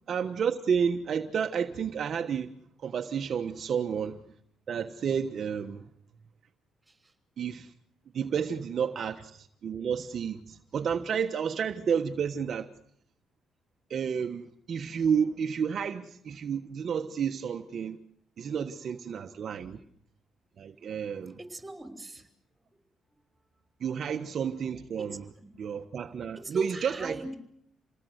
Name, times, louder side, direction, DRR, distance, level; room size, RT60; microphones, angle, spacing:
voice 1, 0.1-2.5 2.8-4.2 4.7-5.9 7.4-7.7 8.1-12.7 13.9-18.0 18.4-19.8 20.6-21.4 23.8-25.2 25.6-27.2, right 7 dB, 55° right, 1.4 m, -31 dB
voice 2, 21.4-22.3 25.0-25.5 26.4-27.4, right 2 dB, 20° right, 5.7 m, -42 dB
28.5 x 18.5 x 8.1 m
cardioid pair, 90°, 0 cm